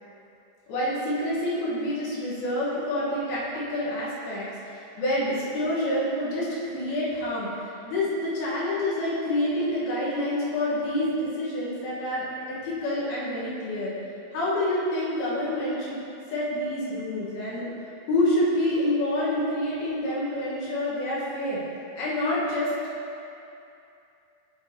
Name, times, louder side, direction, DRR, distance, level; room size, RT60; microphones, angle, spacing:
voice 1, 0.7-13.9 14.3-16.0 16.3-17.7 18.1-21.6 22.0-22.7, left 1 dB, 70° left, -8 dB, 3.0 m, -27 dB
7.9 x 7.2 x 2.8 m, 2.7 s
omnidirectional pair, 4.8 m